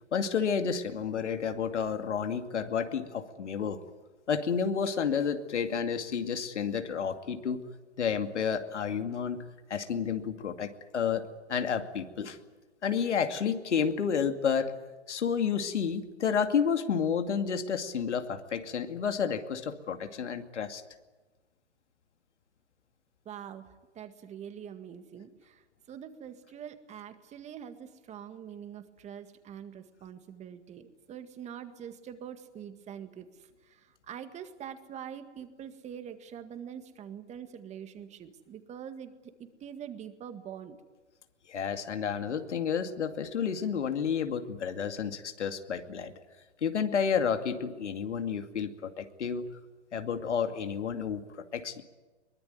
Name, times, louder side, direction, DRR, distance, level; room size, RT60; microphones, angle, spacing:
voice 1, 0.1-3.8 4.3-7.6 8.0-9.4 9.7-12.4 12.8-14.7 15.1-20.8 41.5-46.1 46.6-49.5 49.9-51.2 51.5-51.8, left 7 dB, 75° left, 7 dB, 2.5 m, -30 dB
voice 2, 23.3-33.3 33.7-40.8, right 8 dB, 20° right, 9 dB, 1.9 m, -44 dB
23.0 x 20.0 x 9.5 m, 1.2 s
hypercardioid pair, 130°, 35 cm